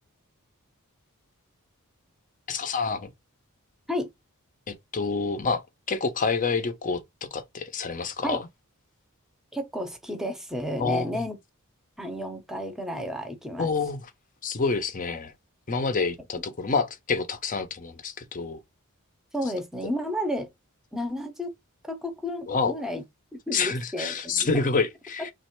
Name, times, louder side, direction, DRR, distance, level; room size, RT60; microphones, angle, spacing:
voice 1, 2.5-3.1 4.7-5.6 5.9-8.5 10.8-11.2 13.6-14.1 14.4-15.3 15.7-18.6 22.5-22.7 23.5-25.3, left 4 dB, 35° left, 0.6 m, -28 dB
voice 2, 9.5-11.4 12.0-13.7 19.3-20.5 20.9-21.5 21.8-23.0 23.3-24.5, equal, ahead, 0.7 m, -32 dB
3.1 x 2.4 x 4.4 m
head